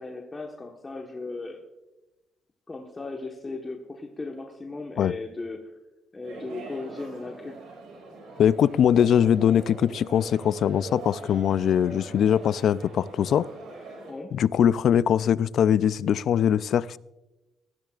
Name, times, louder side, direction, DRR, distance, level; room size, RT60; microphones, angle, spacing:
voice 1, 0.0-1.6 2.7-5.7 6.1-7.6 14.1-14.3, left 3 dB, 25° left, 2 dB, 1.3 m, -37 dB
sound 1, 6.2-14.1, right 3 dB, 85° right, 5.1 m, -42 dB
voice 2, 8.4-13.5 14.3-17.0, left 9 dB, 65° left, 18 dB, 0.4 m, -22 dB
19.0 x 14.0 x 2.4 m, 1.0 s
cardioid pair, 90°, 0 cm